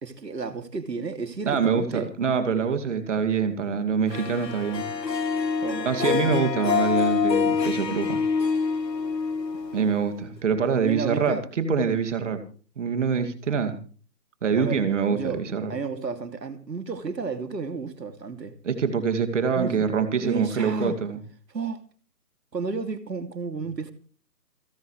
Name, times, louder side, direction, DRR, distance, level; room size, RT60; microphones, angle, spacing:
voice 1, 0.0-2.1 5.6-6.6 10.7-11.4 14.6-14.8 15.1-15.4 15.7-18.5 19.5-19.8 20.2-21.0 21.5-21.8 22.5-23.9, right 4 dB, 85° right, 2.8 m, -32 dB
voice 2, 1.5-4.8 5.8-8.2 9.7-12.4 12.8-13.8 14.4-15.7 18.6-21.2, right 6 dB, 45° right, 2.5 m, -25 dB
Harp, 4.1-10.4, left 6 dB, 85° left, 2.4 m, -26 dB
29.0 x 10.5 x 3.3 m
hypercardioid pair, 160°, 49 cm